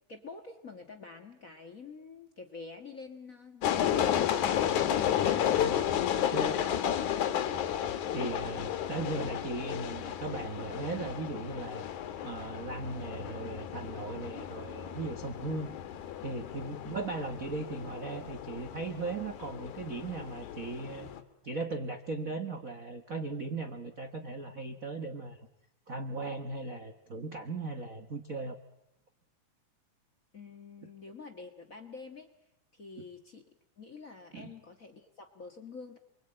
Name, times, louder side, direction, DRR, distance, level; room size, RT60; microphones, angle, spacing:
voice 1, 0.1-4.7 16.8-16.9 30.3-32.3 32.7-33.4 33.8-36.0, left 4 dB, 35° left, 5 dB, 1.4 m, -47 dB
sound 1, 3.6-21.2, left 10 dB, 70° left, 2.7 m, -33 dB
voice 2, 8.1-11.9 12.2-15.7 16.2-21.1 21.4-25.5 25.9-28.6 34.3-34.5, right 3 dB, 55° right, 7 dB, 0.9 m, -38 dB
28.5 x 23.5 x 8.9 m, 0.85 s
omnidirectional pair, 3.7 m